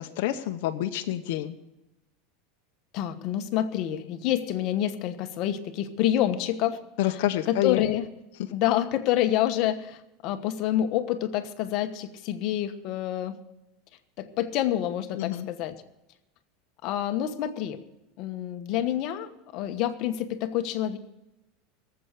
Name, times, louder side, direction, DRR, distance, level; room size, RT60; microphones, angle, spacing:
voice 1, 0.0-1.5 7.0-7.9 15.1-15.5, left 13 dB, 70° left, 5 dB, 0.8 m, -28 dB
voice 2, 2.9-6.8 7.0-8.1 8.5-13.4 14.2-15.8 16.8-17.8 18.2-21.0, left 12 dB, 50° left, 9 dB, 1.2 m, -28 dB
18.5 x 7.9 x 6.7 m, 0.94 s
supercardioid pair, 145°, 0 cm